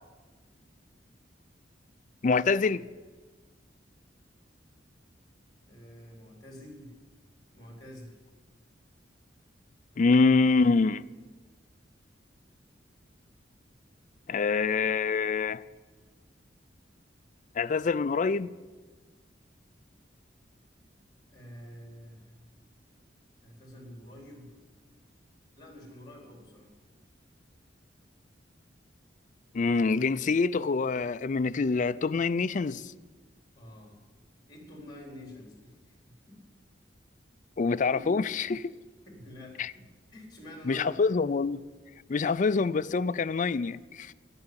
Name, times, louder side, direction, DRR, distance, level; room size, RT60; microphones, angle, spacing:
voice 1, 2.2-2.8 10.0-11.0 14.3-15.6 17.6-18.5 29.5-32.8 37.6-38.7 39.6-39.7 40.7-41.6 42.1-44.1, left 4 dB, 45° left, 0.4 m, -25 dB
voice 2, 5.6-6.9 7.5-8.1 21.3-22.3 23.4-24.5 25.6-26.7 33.6-34.0 34.5-36.4 37.9-38.2 39.1-39.8 40.1-41.0, left 1 dB, 25° left, 4.2 m, -47 dB
12.0 x 11.0 x 9.7 m
head